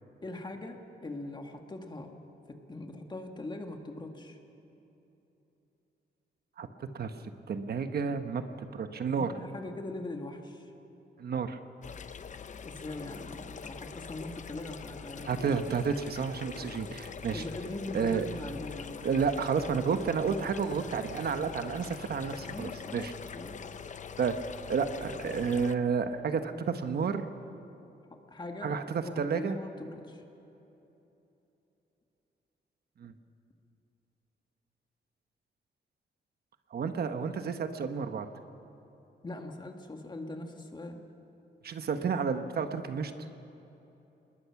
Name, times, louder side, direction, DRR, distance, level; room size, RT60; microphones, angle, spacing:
voice 1, 0.2-2.2 2.5-4.4 9.1-10.7 12.6-15.5 17.2-19.1 22.5-23.6 28.1-30.2 39.2-41.0, left 2 dB, 25° left, 4 dB, 1.9 m, -41 dB
voice 2, 6.6-7.1 7.5-8.4 8.7-9.3 11.2-11.6 15.3-17.4 17.9-18.3 19.0-23.1 24.2-24.3 24.7-27.3 28.6-29.6 33.0-33.1 36.7-38.3 41.6-43.1, right 6 dB, 60° right, 8 dB, 1.2 m, -31 dB
sound 1, 11.8-25.7, left 6 dB, 45° left, 0.7 m, -44 dB
27.5 x 20.5 x 6.0 m, 3.0 s
wide cardioid pair, 130°, 18 cm